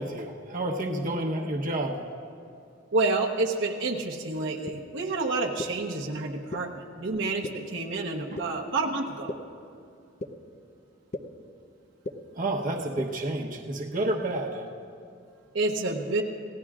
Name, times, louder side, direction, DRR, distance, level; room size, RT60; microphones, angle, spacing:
voice 1, 0.0-2.0 6.5-6.6 8.3-8.4 12.3-14.7, right 1 dB, 45° right, 0 dB, 1.1 m, -30 dB
voice 2, 2.9-6.7 7.0-9.3 15.5-16.2, right 3 dB, 65° right, 0 dB, 1.1 m, -29 dB
sound 1, 4.7-4.8 5.6-5.7 6.5-6.6 7.4-7.5 8.4-8.5 9.3-9.4 10.2-10.3 11.1-11.2 12.0-12.1 13.0-13.1, left 2 dB, 35° left, 0.7 m, -33 dB
27.5 x 16.5 x 2.5 m, 2.4 s
head